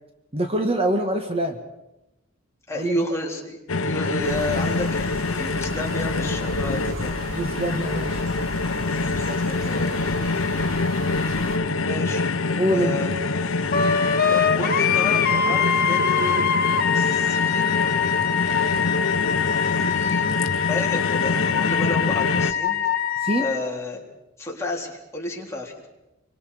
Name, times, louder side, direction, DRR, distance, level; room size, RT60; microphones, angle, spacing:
voice 1, 0.3-1.6 2.7-3.0 6.9-7.0 7.3-8.2 12.6-13.0 23.2-23.5, right 1 dB, 30° right, 5 dB, 1.6 m, -24 dB
voice 2, 2.7-7.2 9.0-10.2 11.8-12.2 12.7-13.3 14.3-16.4 16.9-17.9 19.6-20.3 20.6-22.8 23.0-23.1 23.4-24.0 24.4-25.9, left 1 dB, 15° left, -2 dB, 3.8 m, -31 dB
sound 1, 3.7-22.5, left 3 dB, 70° left, 0.9 m, -25 dB
sound 2, 4.2-11.6, right 1 dB, 70° right, 2.8 m, -35 dB
Wind instrument woodwind instrument, 13.7-23.6, left 7 dB, 45° left, 1.5 m, -23 dB
27.0 x 24.5 x 5.1 m, 0.94 s
head